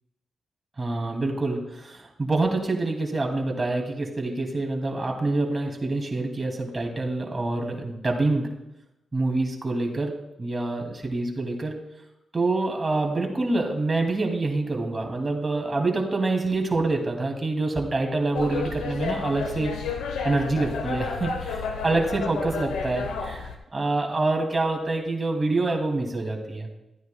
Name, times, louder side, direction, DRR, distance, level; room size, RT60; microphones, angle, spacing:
voice 1, 0.8-8.5 9.1-11.8 12.3-19.7 20.2-26.7, right 2 dB, 30° right, 1 dB, 2.4 m, -26 dB
sound 1, 18.3-23.6, left 5 dB, 85° left, 1.0 m, -31 dB
13.5 x 9.3 x 2.3 m, 0.94 s
supercardioid pair, 50°, 0 cm